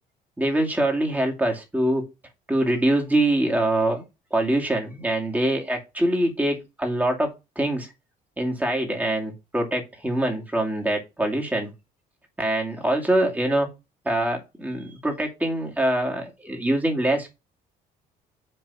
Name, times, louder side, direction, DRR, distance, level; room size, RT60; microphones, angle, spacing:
voice 1, 0.4-2.0 2.5-4.0 4.3-7.3 7.6-7.9 8.4-11.7 12.4-13.7 14.0-17.3, right 1 dB, 10° right, 1 dB, 2.5 m, -24 dB
7.7 x 4.0 x 5.8 m, 0.26 s
cardioid pair, 110°, 17 cm